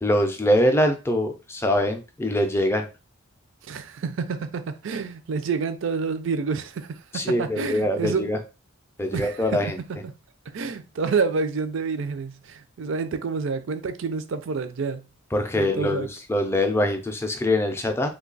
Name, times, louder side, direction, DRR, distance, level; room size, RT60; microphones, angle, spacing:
voice 1, 0.0-2.9 7.1-8.4 9.0-9.8 15.3-18.1, left 1 dB, 10° left, 0.4 m, -23 dB
voice 2, 3.6-8.3 9.1-9.4 10.0-10.1 10.5-15.0 15.6-16.1, right 5 dB, 65° right, 0.4 m, -28 dB
3.1 x 2.3 x 3.8 m
head